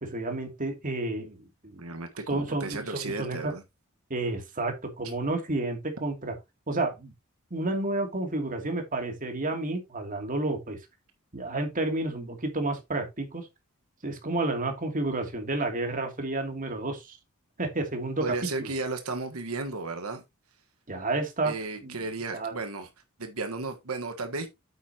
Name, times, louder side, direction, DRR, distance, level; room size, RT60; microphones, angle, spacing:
voice 1, 0.0-1.8 2.3-3.5 4.1-6.3 6.7-7.1 7.5-10.8 11.3-13.5 14.0-17.2 17.6-18.7 20.9-21.5 21.8-22.0 22.3-22.6, right 2 dB, 40° right, 2.6 m, -31 dB
voice 2, 1.8-3.6 18.2-20.2 21.4-22.9 23.2-24.5, right 3 dB, 90° right, 1.4 m, -34 dB
9.1 x 8.3 x 2.9 m
head